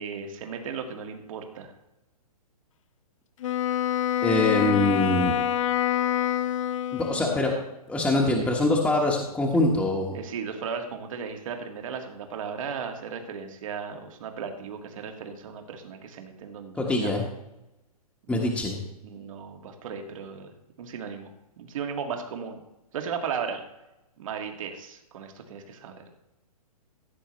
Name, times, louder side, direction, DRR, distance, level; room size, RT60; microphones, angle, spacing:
voice 1, 0.0-1.7 10.1-17.2 18.3-18.7 19.0-21.3 21.6-22.6 22.9-23.6 24.2-26.0, right 6 dB, 55° right, 4 dB, 2.0 m, -36 dB
Wind instrument woodwind instrument, 3.4-7.6, left 10 dB, 55° left, 0.7 m, -26 dB
voice 2, 4.2-5.3 6.9-7.5 7.9-10.1 16.8-17.2 18.3-18.8, left 2 dB, 5° left, -1 dB, 1.3 m, -24 dB
16.0 x 8.3 x 3.2 m, 0.93 s
hypercardioid pair, 135°, 20 cm